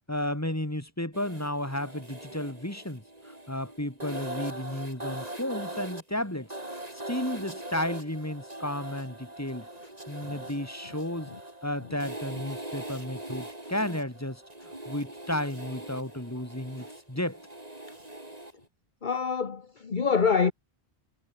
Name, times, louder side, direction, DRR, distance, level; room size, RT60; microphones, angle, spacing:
voice 1, 0.1-3.0 3.5-6.5 7.1-9.7 10.1-11.3 11.6-14.4 14.9-17.4, left 1 dB, 15° left, 3.5 m, -33 dB
sound 1, 1.1-18.6, right 1 dB, 40° right, 4.4 m, -41 dB
voice 2, 19.0-20.5, left 5 dB, 50° left, 1.3 m, -26 dB
omnidirectional pair, 1.1 m